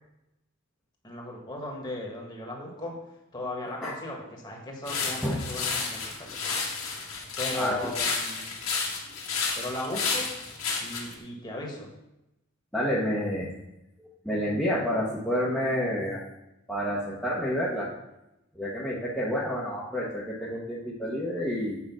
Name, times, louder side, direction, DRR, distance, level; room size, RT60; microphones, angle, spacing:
voice 1, 1.0-2.9 3.3-6.6 7.4-8.5 9.5-10.3 10.8-11.9, left 1 dB, 20° left, -1 dB, 1.7 m, -37 dB
sound 1, 4.9-11.1, left 5 dB, 85° left, 1.9 m, -31 dB
voice 2, 12.7-13.5 14.0-16.2 16.7-17.9 18.5-21.8, equal, 5° left, -8 dB, 1.1 m, -29 dB
7.7 x 5.0 x 6.2 m, 0.91 s
head